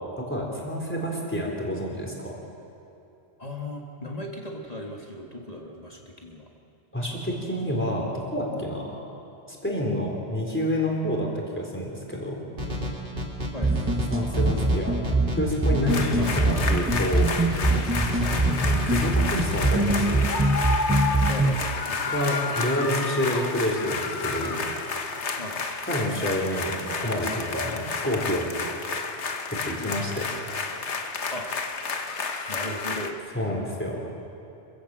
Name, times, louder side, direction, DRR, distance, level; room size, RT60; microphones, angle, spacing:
voice 1, 0.3-2.4 6.9-9.0 9.5-11.3 11.6-12.4 14.1-15.0 15.4-17.3 18.5-20.3 22.1-24.6 25.8-28.5 29.5-30.3 33.3-34.0, equal, 10° left, -2 dB, 3.9 m, -28 dB
voice 2, 3.4-6.5 13.5-14.0 16.2-16.4 18.2-18.4 21.3-22.3 25.4-25.6 31.3-31.5 32.5-33.2, left 1 dB, 35° left, 0 dB, 1.8 m, -37 dB
sound 1, 12.6-20.1, equal, 50° right, 2.7 m, -32 dB
sound 2, 13.6-21.6, right 2 dB, 15° right, 0.7 m, -24 dB
sound 3, 15.9-33.1, left 4 dB, 75° left, 1.5 m, -31 dB
26.5 x 15.5 x 7.6 m, 2.8 s
omnidirectional pair, 1.2 m